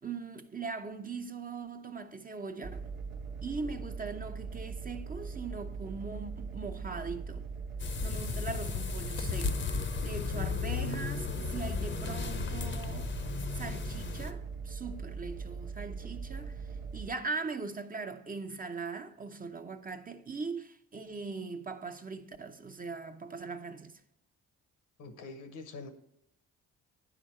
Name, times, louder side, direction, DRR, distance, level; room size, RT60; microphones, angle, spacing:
voice 1, 0.0-2.9 3.4-7.5 8.0-13.1 13.6-24.0, right 4 dB, 30° right, 0.7 m, -40 dB
sound 1, 2.6-17.1, right 5 dB, 85° right, 1.2 m, -41 dB
sound 2, 7.8-14.3, left 6 dB, 40° left, 0.7 m, -35 dB
voice 2, 25.0-25.9, left 3 dB, 80° left, 1.1 m, -44 dB
9.4 x 5.1 x 4.3 m
supercardioid pair, 60°, 31 cm